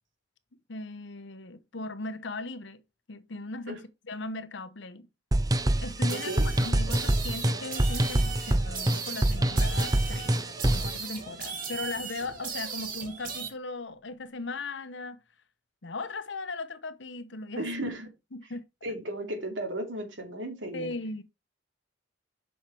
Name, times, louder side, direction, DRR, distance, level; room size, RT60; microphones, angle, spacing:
voice 1, 0.7-2.8 3.1-3.8 4.1-5.1 5.8-10.3 10.6-15.2 15.8-17.7 18.3-18.6 20.7-21.2, left 3 dB, 70° left, 1.0 m, -38 dB
sound 1, 5.3-10.9, right 1 dB, 20° right, 0.6 m, -26 dB
sound 2, 6.1-13.5, right 5 dB, 50° right, 2.4 m, -38 dB
voice 2, 6.1-6.5 17.6-18.1 18.8-20.9, right 1 dB, 85° right, 2.8 m, -35 dB
7.6 x 5.6 x 4.7 m
head